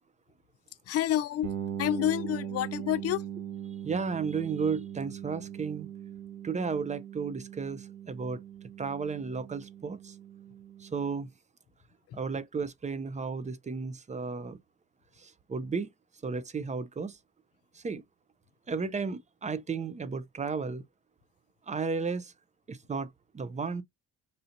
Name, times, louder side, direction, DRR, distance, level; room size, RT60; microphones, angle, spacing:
voice 1, 0.9-1.5 1.8-3.2 12.1-12.2, left 12 dB, 55° left, 0.4 m, -28 dB
sound 1, 1.4-11.1, right 10 dB, 75° right, 1.2 m, -40 dB
voice 2, 3.8-5.9 6.4-8.4 8.8-10.1 10.8-11.3 12.1-14.6 15.2-15.9 16.2-17.2 17.7-18.0 18.7-20.8 21.7-22.3 22.7-23.1 23.3-23.8, right 5 dB, 25° right, 0.5 m, -33 dB
5.4 x 2.8 x 2.5 m
cardioid pair, 90°, 30 cm